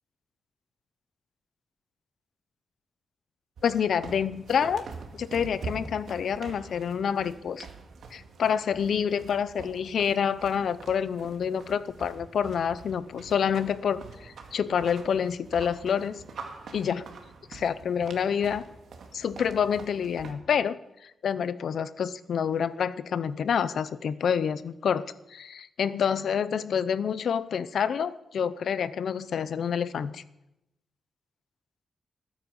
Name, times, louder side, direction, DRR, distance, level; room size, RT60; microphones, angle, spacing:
voice 1, 3.6-4.8 5.1-7.7 8.1-16.2 16.7-17.0 17.5-18.6 19.1-20.8 21.0-25.0 25.3-30.2, left 7 dB, 70° left, 15 dB, 0.7 m, -28 dB
sound 1, 3.6-20.3, right 4 dB, 80° right, 2.0 m, -45 dB
20.5 x 9.3 x 5.4 m, 0.88 s
wide cardioid pair, 125°, 0 cm